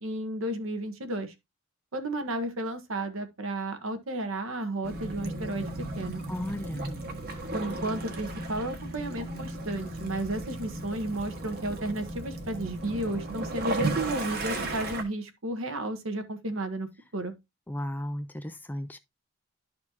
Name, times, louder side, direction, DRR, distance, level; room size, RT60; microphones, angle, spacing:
voice 1, 0.0-1.3 1.9-5.7 6.0-6.2 7.5-17.3, right 1 dB, 65° right, 1.2 m, -33 dB
Waves surf / Splash splatter / Trickle dribble, 4.8-15.0, right 2 dB, 45° right, 1.4 m, -35 dB
voice 2, 6.3-7.0 17.7-19.0, left 1 dB, 10° left, 0.3 m, -35 dB
12.0 x 4.2 x 2.8 m
head